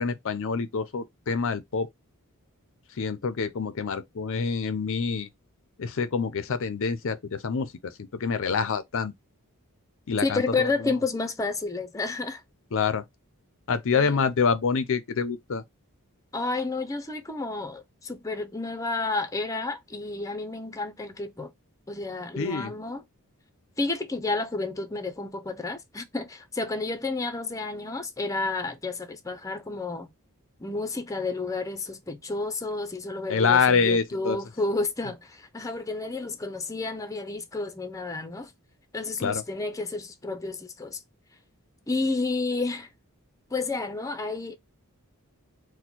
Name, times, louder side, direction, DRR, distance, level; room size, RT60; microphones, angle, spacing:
voice 1, 0.0-1.9 3.0-5.3 5.8-9.1 10.1-10.7 12.7-13.0 13.7-15.6 22.4-22.7 33.3-34.4 39.2-39.4, left 5 dB, 60° left, 0.5 m, -26 dB
voice 2, 10.2-12.4 13.9-14.3 16.3-21.5 21.9-23.0 23.8-30.1 30.6-38.5 38.9-41.0 41.9-42.9 43.5-44.6, left 3 dB, 15° left, 0.6 m, -31 dB
4.3 x 2.1 x 4.4 m
head